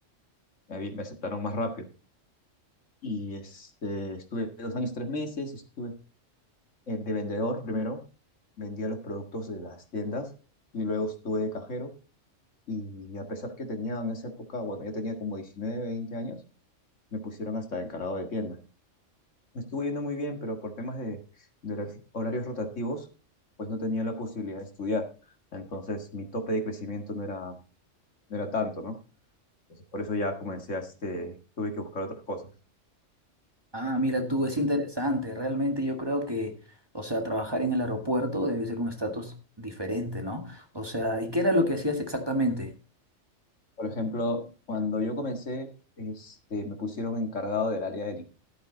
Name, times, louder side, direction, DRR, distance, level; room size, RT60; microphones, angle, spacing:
voice 1, 0.7-1.9 3.0-5.9 6.9-8.0 8.6-10.3 10.7-11.9 12.7-16.4 17.1-18.6 19.5-21.2 21.6-23.1 23.6-25.1 25.5-27.6 28.3-29.0 29.9-32.5 34.6-34.7 43.8-45.7 46.0-48.3, left 2 dB, 75° left, 5 dB, 2.2 m, -33 dB
voice 2, 33.7-36.5 36.9-42.7, equal, 20° right, 4 dB, 1.8 m, -28 dB
13.0 x 8.7 x 3.9 m, 0.34 s
omnidirectional pair, 1.3 m